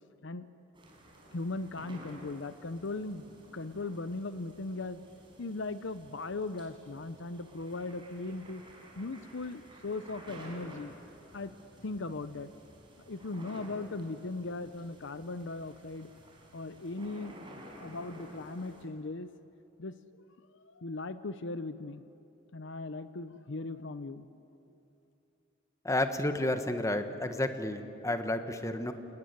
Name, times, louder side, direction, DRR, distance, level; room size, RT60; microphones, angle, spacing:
sound 1, 0.7-18.8, right 1 dB, 25° right, 5.2 m, -52 dB
voice 1, 1.3-3.3 3.5-5.0 5.4-8.6 9.0-10.9 11.3-11.5 11.8-12.5 13.0-16.1 16.5-17.4 17.8-19.3 19.8-20.0 20.6-22.0 22.5-24.3, left 3 dB, 65° left, 13 dB, 0.8 m, -38 dB
voice 2, 25.8-28.9, left 1 dB, 15° left, 8 dB, 1.3 m, -31 dB
28.5 x 19.5 x 9.5 m, 2.8 s
head